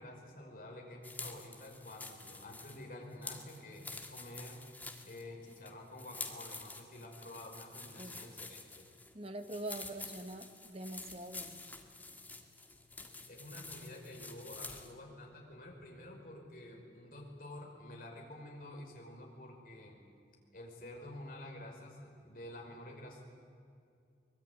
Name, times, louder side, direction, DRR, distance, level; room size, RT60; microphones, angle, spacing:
voice 1, 0.0-4.6 5.0-8.9 13.3-20.0 20.5-23.2, left 1 dB, 50° left, 0 dB, 5.4 m, -49 dB
sound 1, 1.0-15.0, left 3 dB, 10° left, 1.8 m, -48 dB
voice 2, 9.1-11.6, right 1 dB, 35° right, 8 dB, 1.5 m, -44 dB
23.5 x 21.0 x 9.5 m, 2.4 s
head